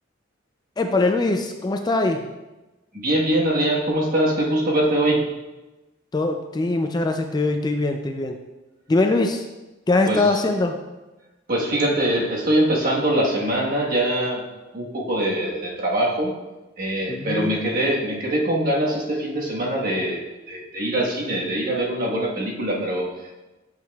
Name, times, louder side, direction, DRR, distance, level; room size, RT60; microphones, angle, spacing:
voice 1, 0.8-2.2 6.1-8.4 8.9-9.5 9.9-10.8 17.1-17.6, left 2 dB, 20° left, 5 dB, 0.3 m, -22 dB
voice 2, 2.9-5.3 10.1-10.3 11.5-14.4 14.7-16.3 16.8-23.3, right 1 dB, 50° right, -3 dB, 1.3 m, -23 dB
7.5 x 6.0 x 2.3 m, 1.1 s
head